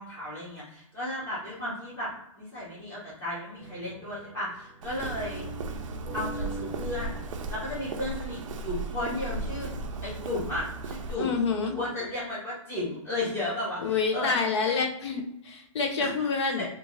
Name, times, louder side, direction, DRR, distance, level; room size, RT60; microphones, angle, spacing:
voice 1, 0.0-2.1 2.4-5.5 6.1-7.2 7.5-9.7 10.0-14.8 16.0-16.1 16.6-16.7, left 1 dB, 15° left, -8 dB, 1.0 m, -34 dB
sound 1, 3.6-11.9, right 2 dB, 15° right, 0.6 m, -43 dB
Walk footsteps, 4.8-11.2, right 2 dB, 65° right, 0.5 m, -36 dB
voice 2, 11.2-11.8 13.8-16.6, left 5 dB, 55° left, 4 dB, 0.7 m, -27 dB
2.5 x 2.5 x 2.9 m, 0.77 s
hypercardioid pair, 145°, 18 cm